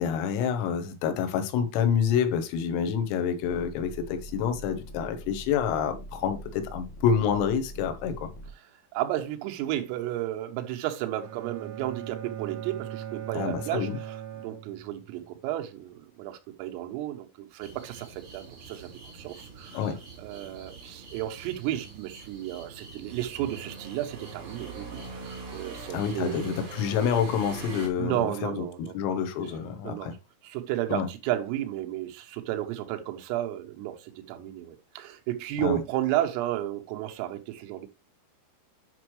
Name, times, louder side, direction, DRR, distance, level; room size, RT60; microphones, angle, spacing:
voice 1, 0.0-8.3 13.4-14.0 19.7-20.0 25.9-28.7 29.0-30.1 30.9-31.1 35.6-35.8, left 7 dB, 90° left, 3.8 m, -28 dB
sound 1, 3.4-8.5 9.2-9.9, right 1 dB, 65° left, 2.3 m, -43 dB
voice 2, 8.9-19.9 20.2-26.7 28.0-29.0 29.8-30.2 30.4-37.9, right 13 dB, 85° right, 3.7 m, -33 dB
Bowed string instrument, 11.2-15.3, right 10 dB, 65° right, 1.9 m, -39 dB
sound 2, 17.6-27.9, right 4 dB, 40° right, 4.0 m, -43 dB
9.2 x 6.1 x 3.1 m
omnidirectional pair, 5.9 m